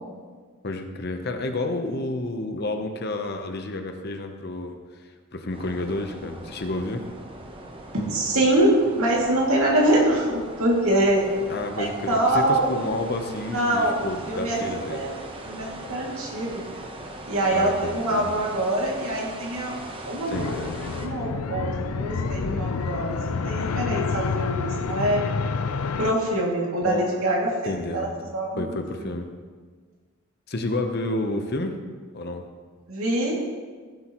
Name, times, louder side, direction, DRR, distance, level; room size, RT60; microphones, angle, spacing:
voice 1, 0.6-7.1 11.5-15.0 17.5-18.3 20.3-20.8 26.8-27.1 27.6-29.3 30.5-31.7 32.1-32.5, left 2 dB, 45° left, 6 dB, 0.8 m, -30 dB
noise shore, 5.5-21.1, right 1 dB, 25° right, 0.9 m, -40 dB
voice 2, 7.9-11.3 11.8-12.7 13.5-14.6 14.9-15.1 15.5-16.6 17.2-19.8 20.0-20.5 21.0-25.2 26.0-28.8 32.9-33.4, right 1 dB, 70° right, -3 dB, 2.4 m, -24 dB
sound 1, 20.3-26.1, left 4 dB, 80° left, 0.5 m, -28 dB
15.5 x 8.0 x 3.0 m, 1.5 s
head